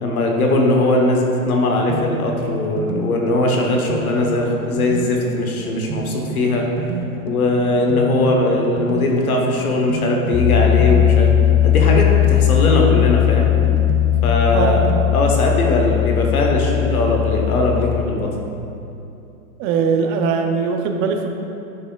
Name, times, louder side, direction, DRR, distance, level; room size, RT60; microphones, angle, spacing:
voice 1, 0.0-6.7 7.2-11.3 11.6-13.5 14.2-14.8 15.1-18.3, left 2 dB, 80° left, 0 dB, 1.2 m, -19 dB
sound 1, 1.4-16.3, right 5 dB, 80° right, 0.7 m, -31 dB
Piano, 10.3-18.0, left 12 dB, 15° left, 0.7 m, -17 dB
voice 2, 14.5-14.8 19.6-21.3, right 5 dB, 35° right, 5 dB, 0.6 m, -20 dB
9.3 x 5.0 x 2.4 m, 2.7 s
hypercardioid pair, 105°, 43 cm